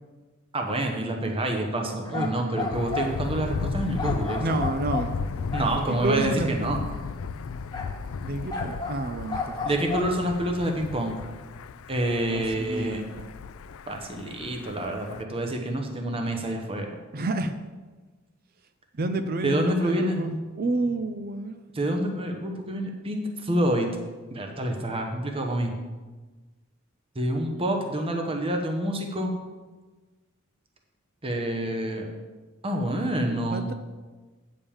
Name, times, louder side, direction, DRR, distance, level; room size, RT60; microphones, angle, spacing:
voice 1, 0.5-4.4 5.5-6.8 9.7-11.1 11.9-13.0 13.9-17.0 19.4-20.2 21.7-23.9 24.3-25.7 27.2-29.3 31.2-32.1 32.6-33.7, right 1 dB, 25° right, 3 dB, 0.9 m, -27 dB
voice 2, 1.2-2.7 4.4-5.2 5.9-6.8 8.2-9.7 12.3-13.3 17.1-17.5 19.0-21.6 33.3-33.7, right 2 dB, 45° right, 9 dB, 0.5 m, -30 dB
sound 1, 2.0-3.1 4.0-5.9 7.7-8.0 8.5-10.2, left 4 dB, 20° left, 1.2 m, -33 dB
Thunder, 2.7-15.2, left 5 dB, 75° left, 0.4 m, -35 dB
8.8 x 5.2 x 7.0 m, 1.3 s
head